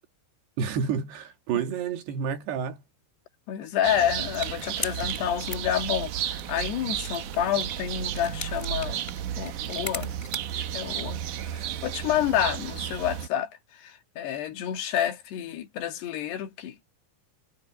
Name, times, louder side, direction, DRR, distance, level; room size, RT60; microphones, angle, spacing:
voice 1, 0.6-2.8, right 7 dB, 85° right, 3.9 m, -29 dB
voice 2, 3.5-9.0 9.4-10.1 10.5-16.9, left 10 dB, 85° left, 4.0 m, -29 dB
sound 1, 3.8-13.3, right 10 dB, 65° right, 2.2 m, -33 dB
sound 2, 4.3-11.4, left 2 dB, 10° left, 4.0 m, -41 dB
omnidirectional pair, 4.6 m